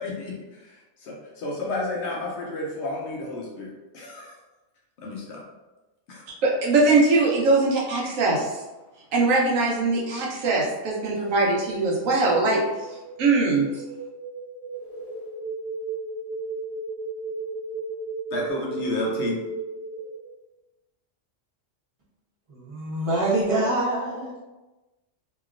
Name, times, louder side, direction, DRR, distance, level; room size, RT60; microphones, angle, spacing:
voice 1, 0.0-4.3 5.0-5.4 6.1-6.2 18.3-19.4, left 2 dB, 65° left, -2 dB, 0.9 m, -31 dB
voice 2, 6.4-8.6 9.1-12.6 13.2-13.7, right 3 dB, 85° right, -2 dB, 1.1 m, -21 dB
sound 1, 12.4-20.3, right 4 dB, 85° left, 1.1 m, -35 dB
voice 3, 22.5-24.4, right 2 dB, 25° right, -8 dB, 1.0 m, -25 dB
3.0 x 2.8 x 2.4 m, 1.1 s
omnidirectional pair, 1.4 m